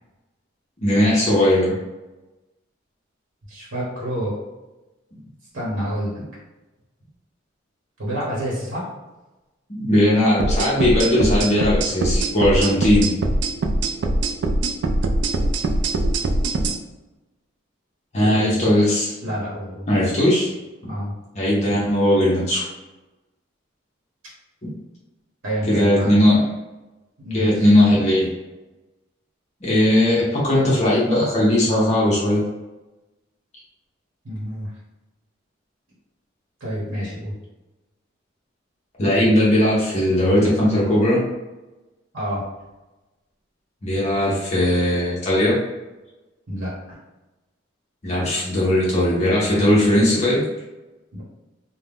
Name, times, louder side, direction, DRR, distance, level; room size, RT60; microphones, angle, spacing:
voice 1, 0.8-1.8 9.7-13.1 18.1-19.2 19.9-20.5 21.3-22.7 24.6-24.7 25.7-26.5 27.3-28.3 29.6-32.4 39.0-41.2 43.8-45.6 48.0-50.4, left 1 dB, 35° left, -7 dB, 0.6 m, -18 dB
voice 2, 3.5-4.3 5.5-6.2 8.0-8.9 18.1-18.7 19.2-19.9 20.9-21.1 25.4-26.2 27.2-27.7 34.2-34.7 36.6-37.3 42.1-42.4 46.5-46.7 51.1-51.2, equal, 80° right, -7 dB, 0.9 m, -28 dB
sound 1, 10.4-16.8, right 2 dB, 60° right, 0.3 m, -22 dB
2.4 x 2.1 x 3.4 m, 1.1 s
head